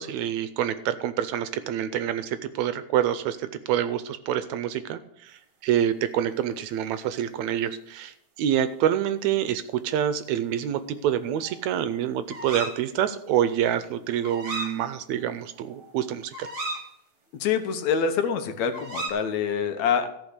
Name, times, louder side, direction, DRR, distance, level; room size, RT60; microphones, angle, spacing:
voice 1, 0.0-16.5, right 10 dB, 80° right, 13 dB, 1.8 m, -27 dB
sound 1, 11.2-11.8 12.3-12.8 14.2-14.8 15.1-15.3 15.6-16.9 18.7-19.1, right 2 dB, 35° right, 2.0 m, -35 dB
voice 2, 17.3-20.1, left 7 dB, 70° left, 8 dB, 2.2 m, -25 dB
14.0 x 5.1 x 8.0 m, 0.80 s
omnidirectional pair, 3.5 m